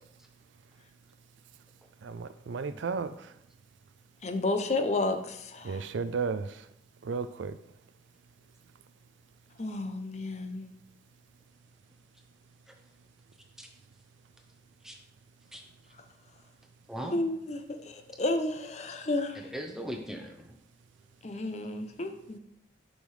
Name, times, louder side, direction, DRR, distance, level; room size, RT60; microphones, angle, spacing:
voice 1, 2.0-3.1 5.6-6.5 7.1-7.5, right 5 dB, 80° right, 0.4 m, -33 dB
voice 2, 4.2-5.8 9.6-10.7 17.0-19.5 21.2-22.4, left 2 dB, 35° left, 0.5 m, -32 dB
voice 3, 19.3-20.5, equal, 5° right, 0.7 m, -39 dB
6.9 x 5.5 x 3.2 m
head